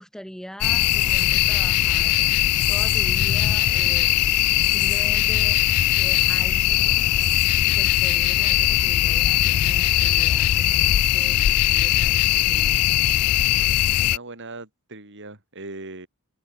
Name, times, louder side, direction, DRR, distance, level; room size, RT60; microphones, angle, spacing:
voice 1, 0.0-2.3 2.7-4.2 4.7-5.6 5.9-7.1 7.7-12.9, equal, 5° left, 2.1 m, -41 dB
sound 1, 0.6-14.2, left 14 dB, 85° left, 0.4 m, -20 dB
voice 2, 13.5-16.1, right 2 dB, 55° right, 4.8 m, -40 dB
open air
head